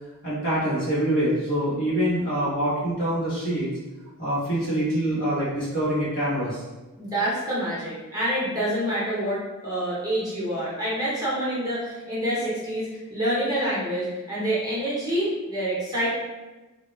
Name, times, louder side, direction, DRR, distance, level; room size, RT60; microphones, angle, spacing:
voice 1, 0.2-3.7 4.2-6.6, right 1 dB, 60° left, -9 dB, 0.9 m, -25 dB
voice 2, 7.0-16.1, right 1 dB, 15° right, -9 dB, 0.7 m, -27 dB
2.2 x 2.0 x 3.1 m, 1.2 s
head